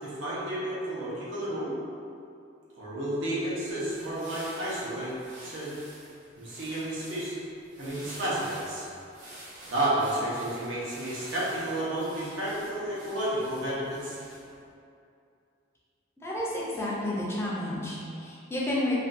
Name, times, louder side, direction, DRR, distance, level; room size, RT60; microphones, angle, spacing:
voice 1, 0.0-1.7 2.7-5.1 5.4-5.7 6.4-7.3 7.8-8.8 9.7-14.2, right 1 dB, 75° right, -8 dB, 0.7 m, -31 dB
sound 1, 3.6-14.6, right 1 dB, 40° right, 0.8 m, -48 dB
voice 2, 16.2-19.1, left 1 dB, 15° left, -7 dB, 0.4 m, -30 dB
2.5 x 2.2 x 2.5 m, 2.5 s
head